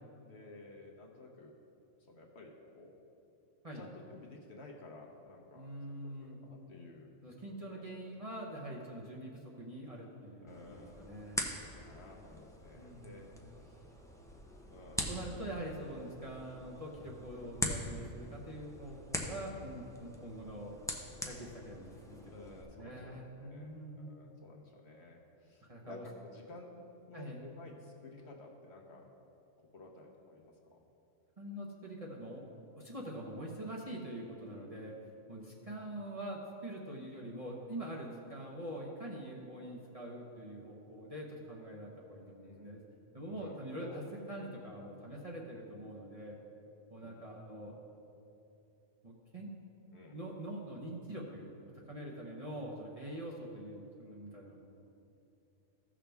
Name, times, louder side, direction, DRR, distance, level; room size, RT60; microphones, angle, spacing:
voice 1, 0.2-1.5 2.0-2.9 3.7-5.7 6.0-7.1 7.7-7.8 10.4-11.2 11.8-13.3 13.6-13.9 14.7-15.1 22.3-29.1 29.7-30.8 42.1-42.7 43.2-44.1 47.0-47.3 49.9-50.1, left 2 dB, 55° left, 0 dB, 1.1 m, -53 dB
voice 2, 5.5-6.4 7.2-11.4 12.7-13.4 15.1-20.7 21.3-24.1 25.6-26.0 27.1-27.4 31.4-32.4 32.7-35.0 35.3-42.8 43.1-46.4 46.9-47.7 49.0-49.5 50.1-54.6, right 1 dB, 30° right, -4 dB, 0.9 m, -44 dB
sound 1, 10.5-22.6, left 1 dB, 5° left, 0.3 m, -43 dB
15.5 x 6.1 x 3.4 m, 2.8 s
omnidirectional pair, 1.5 m